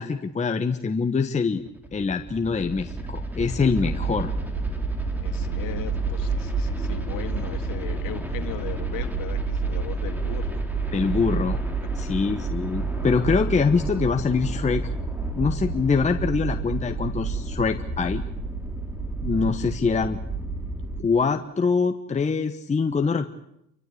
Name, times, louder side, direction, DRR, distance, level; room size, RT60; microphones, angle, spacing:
voice 1, 0.0-1.6 1.9-4.3 10.9-11.6 11.9-14.9 15.4-18.2 19.2-20.2 21.0-23.3, left 5 dB, 15° left, 6 dB, 1.2 m, -24 dB
sound 1, 1.6-21.0, right 3 dB, 5° right, 3.1 m, -29 dB
voice 2, 5.2-10.6 11.8-11.9, left 12 dB, 50° left, 7 dB, 2.4 m, -38 dB
29.5 x 14.5 x 8.4 m, 0.81 s
supercardioid pair, 105°, 44 cm